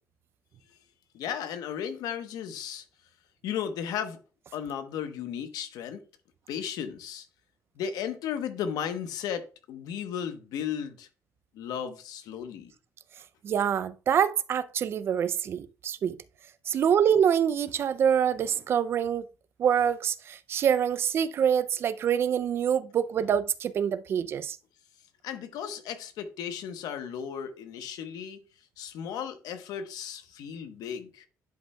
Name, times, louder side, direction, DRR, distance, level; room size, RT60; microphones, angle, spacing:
voice 1, 1.1-2.8 3.4-4.2 4.5-6.0 6.5-7.3 7.8-9.4 9.7-11.1 11.5-12.7 25.2-28.4 28.8-31.3, left 8 dB, 80° left, 1.0 m, -35 dB
voice 2, 13.4-16.2 16.7-19.3 19.6-24.6, right 8 dB, 40° right, 0.4 m, -25 dB
10.5 x 5.4 x 2.2 m
cardioid pair, 175°, 6 cm